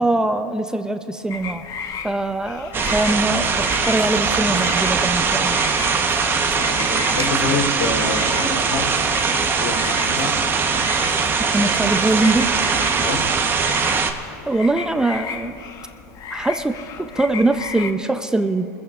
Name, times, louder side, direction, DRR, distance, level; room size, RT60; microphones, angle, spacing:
voice 1, 0.0-1.6 2.0-5.6 11.4-12.5 14.5-15.6 16.3-18.7, right 2 dB, 5° right, 9 dB, 0.6 m, -22 dB
sound 1, 1.3-17.9, left 6 dB, 40° left, 1.0 m, -34 dB
sound 2, 2.7-14.1, right 5 dB, 25° right, 1.1 m, -21 dB
voice 2, 6.5-8.9 9.3-10.4 13.0-13.2, left 3 dB, 80° left, 1 dB, 3.4 m, -27 dB
24.5 x 15.0 x 2.5 m, 2.9 s
hypercardioid pair, 115°, 10 cm